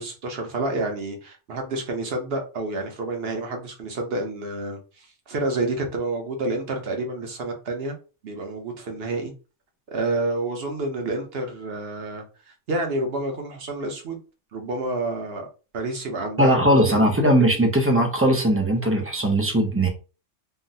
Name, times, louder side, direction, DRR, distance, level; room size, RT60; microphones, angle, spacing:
voice 1, 0.0-8.0 8.2-9.3 9.9-12.2 12.7-14.2 14.5-15.5 15.7-17.1, right 2 dB, 60° right, 0.9 m, -29 dB
voice 2, 16.4-19.9, right 1 dB, 20° right, 0.3 m, -19 dB
3.8 x 2.0 x 2.6 m
omnidirectional pair, 1.2 m